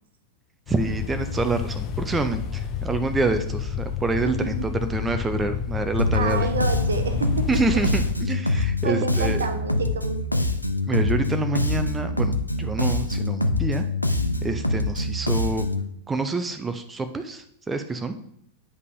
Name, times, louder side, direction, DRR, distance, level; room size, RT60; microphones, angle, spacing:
sound 1, 0.7-8.1, left 8 dB, 35° left, 0.6 m, -30 dB
voice 1, 0.7-6.5 7.5-9.4 10.9-13.8 14.4-15.7 16.1-18.1, right 3 dB, 15° right, 8 dB, 0.5 m, -27 dB
Bass guitar, 6.0-15.9, left 2 dB, 85° left, 0.4 m, -25 dB
voice 2, 6.1-7.8 8.5-10.4, right 5 dB, 70° right, 8 dB, 0.7 m, -29 dB
9.4 x 5.3 x 2.6 m, 0.69 s
figure-of-eight pair, 90°, 0 cm